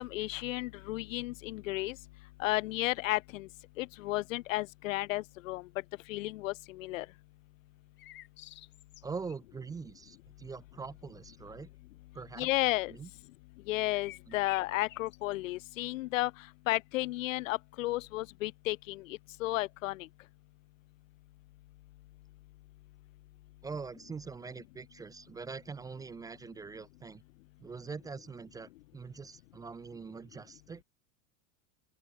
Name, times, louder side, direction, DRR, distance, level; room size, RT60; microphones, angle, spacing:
voice 1, 0.0-2.0 2.4-3.5 3.8-5.7 6.1-7.1 12.4-12.9 13.7-16.3 16.7-20.1, left 19 dB, 75° left, 1.3 m, -33 dB
sound 1, 8.0-9.4 13.8-15.3, left 15 dB, 30° left, 1.3 m, -50 dB
voice 2, 9.0-11.7 12.1-12.5 12.9-13.1 14.3-14.4 23.6-27.2 27.6-30.8, right 5 dB, 10° right, 0.6 m, -43 dB
open air
supercardioid pair, 165°, 39 cm